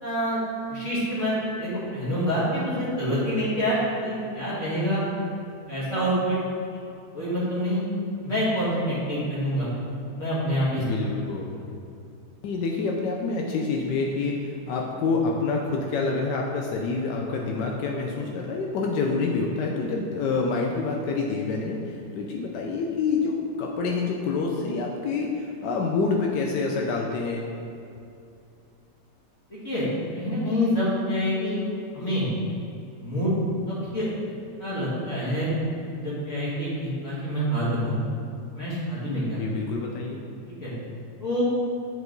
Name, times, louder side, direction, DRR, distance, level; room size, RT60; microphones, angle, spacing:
voice 1, 0.0-0.4 0.7-5.0 5.7-6.4 7.1-7.8 8.2-9.7 10.1-11.1 29.5-29.9 30.1-31.6 31.9-32.3 33.0-33.3 33.7-34.1 34.6-35.5 36.0-38.0 38.5-39.4 40.5-40.7 41.2-41.4, equal, 45° left, -9 dB, 2.2 m, -26 dB
voice 2, 10.8-11.6 12.4-27.4 39.4-40.2, left 4 dB, 85° left, 0 dB, 1.3 m, -27 dB
7.9 x 4.9 x 3.9 m, 2.6 s
omnidirectional pair, 1.8 m